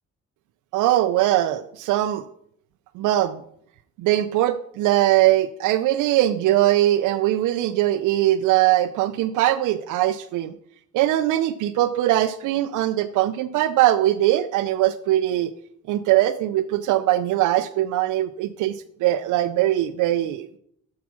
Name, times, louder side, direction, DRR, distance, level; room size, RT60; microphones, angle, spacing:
voice 1, 0.7-2.2 3.0-3.4 4.0-10.5 10.9-15.5 15.9-20.6, right 14 dB, 85° right, 10 dB, 0.5 m, -21 dB
7.2 x 4.7 x 6.1 m, 0.67 s
cardioid pair, 90°, 30 cm